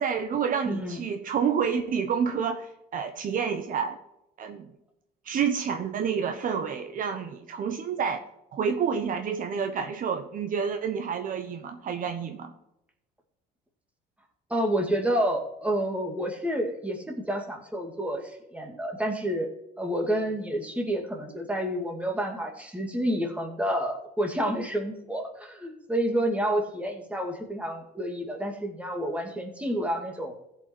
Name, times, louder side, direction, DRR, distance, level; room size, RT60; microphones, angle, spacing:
voice 1, 0.0-4.0 4.4-4.7 5.2-8.2 8.5-12.5, right 7 dB, 55° right, 6 dB, 1.0 m, -29 dB
voice 2, 0.7-1.0 14.5-19.5 19.8-30.3, equal, 10° right, 2 dB, 2.2 m, -29 dB
15.5 x 5.6 x 4.5 m, 0.86 s
cardioid pair, 110°, 17 cm